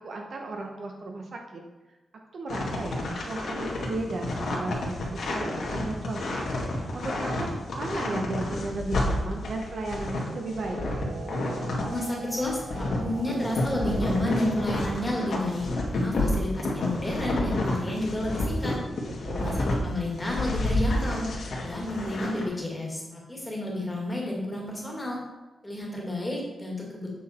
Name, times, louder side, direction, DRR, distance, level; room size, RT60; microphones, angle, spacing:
voice 1, 0.0-1.6 2.3-6.5 6.9-10.8 19.2-19.7, right 2 dB, 50° right, 2 dB, 1.0 m, -35 dB
sound 1, 2.5-12.0 12.3-19.8 20.2-22.4, left 2 dB, 65° left, 1.9 m, -30 dB
sound 2, 10.2-15.1, right 6 dB, 75° right, 0.5 m, -42 dB
voice 2, 11.8-18.8 19.3-21.3 21.6-25.2 25.6-27.1, left 1 dB, 10° left, -3 dB, 1.9 m, -31 dB
8.1 x 6.3 x 4.3 m, 1.2 s
wide cardioid pair, 180°, 0 cm